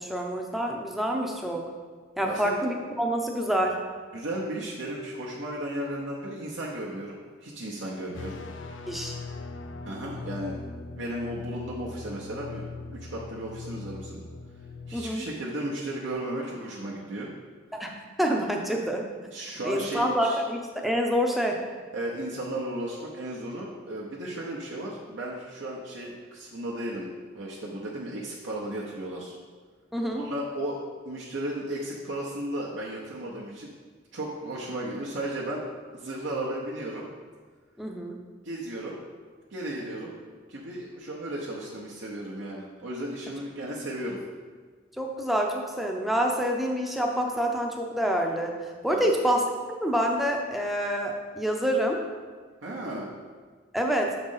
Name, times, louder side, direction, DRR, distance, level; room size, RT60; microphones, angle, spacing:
voice 1, 0.0-1.6 2.2-3.8 8.9-9.2 14.9-15.3 17.8-19.1 19.6-21.6 29.9-30.2 37.8-38.2 45.0-49.4 49.8-52.0 53.7-54.1, equal, ahead, 1 dB, 0.5 m, -27 dB
voice 2, 4.1-8.4 9.8-12.6 12.9-14.2 14.9-17.3 19.3-20.4 21.9-27.1 27.3-29.3 30.1-30.8 31.0-33.7 34.1-35.6 35.9-37.1 38.4-39.0 39.5-40.1 40.5-44.2 48.9-49.1 52.6-53.1, right 1 dB, 75° right, -5 dB, 0.8 m, -35 dB
sound 1, 8.1-15.0, left 4 dB, 80° left, 0.5 m, -40 dB
6.3 x 4.0 x 5.5 m, 1.5 s
head